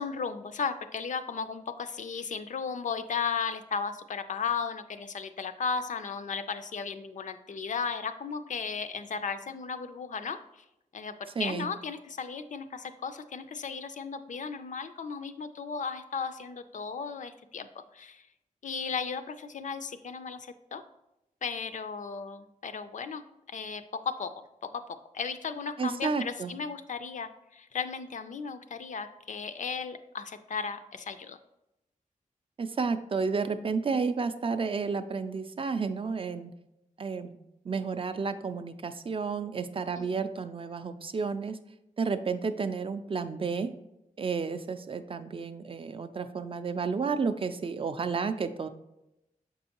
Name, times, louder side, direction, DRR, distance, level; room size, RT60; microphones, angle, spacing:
voice 1, 0.0-10.4 10.9-18.3 18.6-20.8 21.4-24.3 24.6-31.4 40.0-40.4, left 5 dB, 65° left, 9 dB, 0.4 m, -35 dB
voice 2, 11.4-11.7 25.8-26.5 32.6-36.5 37.0-37.4 37.7-41.6 42.0-43.7 44.2-48.7, right 5 dB, 40° right, 10 dB, 0.4 m, -31 dB
6.9 x 5.3 x 2.9 m, 0.89 s
wide cardioid pair, 145°, 14 cm